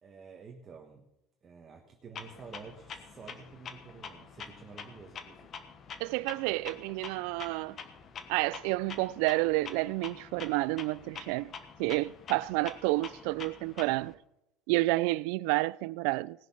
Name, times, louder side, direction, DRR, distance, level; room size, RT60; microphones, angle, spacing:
voice 1, 0.0-1.0 1.4-5.6, right 5 dB, 25° right, 1.3 m, -50 dB
Clock, 2.1-14.1, left 6 dB, 30° left, 1.2 m, -46 dB
voice 2, 6.0-7.8 8.3-11.5 11.8-14.2 14.7-16.5, right 21 dB, 70° right, 0.4 m, -30 dB
18.5 x 7.1 x 5.9 m
cardioid pair, 155°, 0 cm